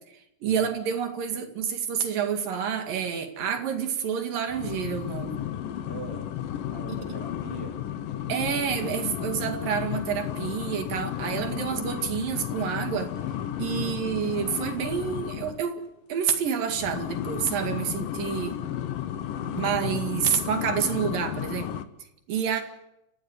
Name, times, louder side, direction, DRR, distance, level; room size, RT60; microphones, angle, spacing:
voice 1, 0.4-5.4 8.3-13.1 13.6-15.8 16.1-18.6 19.5-21.7 22.3-22.6, right 7 dB, 90° right, 6 dB, 3.9 m, -28 dB
sound 1, 4.5-15.6 16.7-21.9, left 10 dB, 85° left, 2.8 m, -33 dB
voice 2, 5.8-6.3 6.7-7.9 22.5-22.6, right 4 dB, 55° right, -4 dB, 4.3 m, -42 dB
30.0 x 15.0 x 9.7 m, 0.89 s
omnidirectional pair, 3.8 m